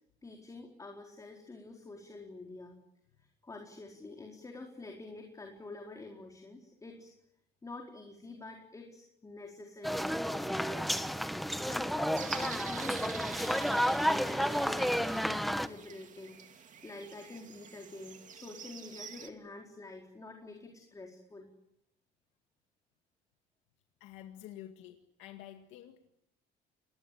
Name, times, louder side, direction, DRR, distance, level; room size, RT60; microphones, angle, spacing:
voice 1, 0.2-2.8 3.2-7.1 7.6-21.5, left 2 dB, 15° left, 4.5 m, -47 dB
sound 1, 9.8-15.7, equal, ahead, 1.2 m, -31 dB
sound 2, 12.1-19.3, right 7 dB, 40° right, 2.7 m, -47 dB
voice 2, 24.0-26.1, left 12 dB, 85° left, 2.0 m, -49 dB
29.0 x 21.0 x 8.5 m
cardioid pair, 125°, 19 cm